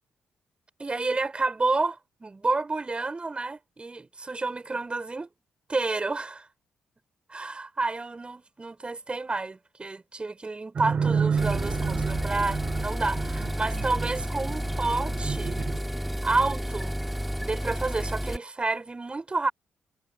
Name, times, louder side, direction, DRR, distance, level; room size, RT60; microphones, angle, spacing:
voice 1, 0.8-5.3 5.7-6.5 7.3-15.6 16.2-17.0 17.4-19.5, right 3 dB, 30° right, 5.1 m, -30 dB
sound 1, 10.8-15.8, right 6 dB, 50° right, 8.0 m, -30 dB
sound 2, 11.4-18.4, equal, ahead, 3.5 m, -31 dB
hypercardioid pair, 40°, 4 cm